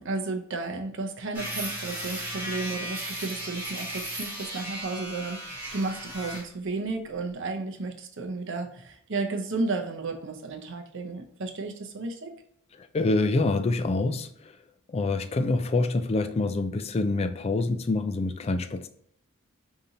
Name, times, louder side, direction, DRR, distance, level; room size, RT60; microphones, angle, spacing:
voice 1, 0.0-12.3, right 3 dB, 60° right, 0.7 m, -33 dB
sound 1, 1.3-6.5, right 1 dB, 10° right, 1.2 m, -36 dB
voice 2, 12.8-14.6 14.9-18.9, left 2 dB, 30° left, 0.3 m, -26 dB
5.0 x 2.7 x 2.8 m
head